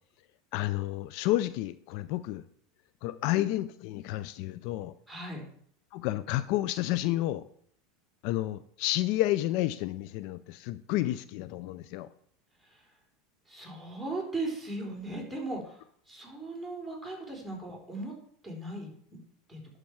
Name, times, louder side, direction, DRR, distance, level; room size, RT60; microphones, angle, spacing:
voice 1, 0.5-2.4 3.0-4.9 5.9-7.4 8.2-12.1, left 15 dB, 60° left, 14 dB, 0.4 m, -30 dB
voice 2, 5.1-5.5 12.7-12.8 13.5-15.8 16.1-18.1 18.4-19.2 19.5-19.6, right 2 dB, ahead, -2 dB, 4.1 m, -37 dB
11.5 x 6.5 x 4.6 m, 0.65 s
hypercardioid pair, 105°, 0 cm